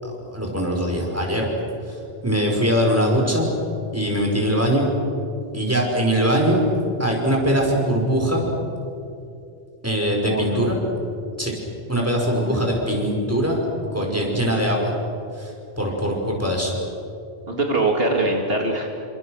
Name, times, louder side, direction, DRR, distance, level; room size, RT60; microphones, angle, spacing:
voice 1, 0.0-1.5 1.9-3.5 3.9-4.9 5.5-6.6 7.0-8.4 9.8-10.8 11.4-11.5 11.9-13.6 13.9-14.9 15.4-16.7, equal, 15° right, 0 dB, 5.2 m, -22 dB
voice 2, 10.2-10.7 12.5-12.6 17.4-18.9, right 2 dB, 70° right, 1 dB, 2.7 m, -23 dB
29.0 x 26.0 x 6.5 m, 2.6 s
omnidirectional pair, 1.0 m